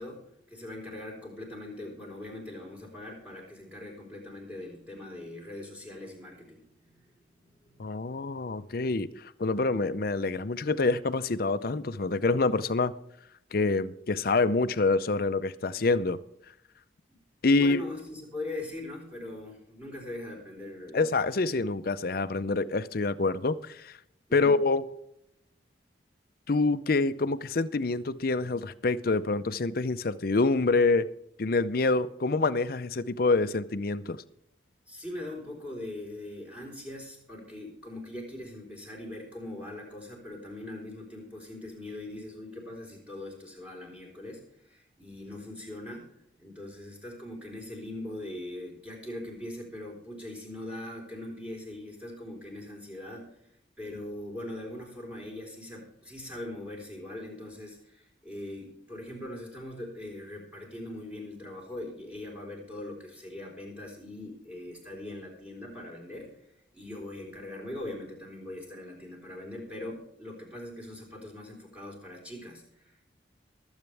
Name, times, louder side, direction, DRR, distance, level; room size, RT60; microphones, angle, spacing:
voice 1, 0.0-7.1 7.4-8.2 17.1-17.2 17.5-21.1 24.3-24.6 34.9-46.1 46.4-53.3 53.8-66.3 66.7-73.1, left 1 dB, 5° right, 4.1 m, -41 dB
voice 2, 7.8-12.9 13.5-16.2 17.4-17.8 20.9-24.0 24.3-24.8 26.5-31.1 31.4-34.2, left 3 dB, 50° left, 0.6 m, -26 dB
23.0 x 8.1 x 3.4 m
head